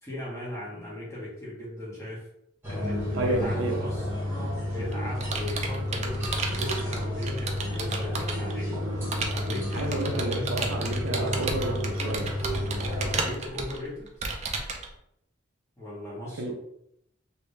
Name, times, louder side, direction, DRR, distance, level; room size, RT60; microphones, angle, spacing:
voice 1, 0.0-2.3 2.7-4.1 4.7-8.9 9.2-11.5 13.0-14.1 15.8-16.5, left 1 dB, 15° left, -7 dB, 1.4 m, -37 dB
sound 1, 2.6-13.3, left 1 dB, 10° right, 1.3 m, -31 dB
voice 2, 3.1-3.8 9.7-12.3 16.4-16.5, right 2 dB, 85° right, 2 dB, 0.6 m, -30 dB
Computer keyboard, 4.5-8.5 9.1-14.9, right 4 dB, 35° right, 0.5 m, -33 dB
3.1 x 2.7 x 3.2 m, 0.76 s
head